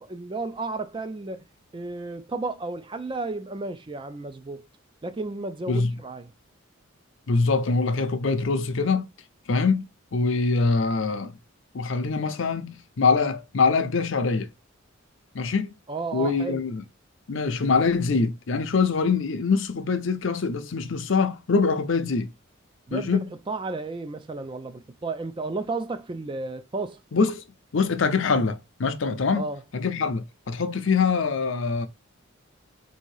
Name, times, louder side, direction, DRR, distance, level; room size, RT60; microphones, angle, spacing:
voice 1, 0.0-1.4 1.7-4.7 5.0-6.3 15.9-16.6 22.9-27.0 29.3-29.6, right 3 dB, 25° right, 0.4 m, -33 dB
voice 2, 7.3-9.1 9.5-9.9 10.1-11.4 11.7-14.5 15.3-15.7 16.1-16.8 17.3-22.3 22.9-23.3 27.1-27.4 27.7-29.5 29.7-31.9, left 4 dB, 65° left, 0.6 m, -24 dB
3.6 x 2.8 x 4.6 m
head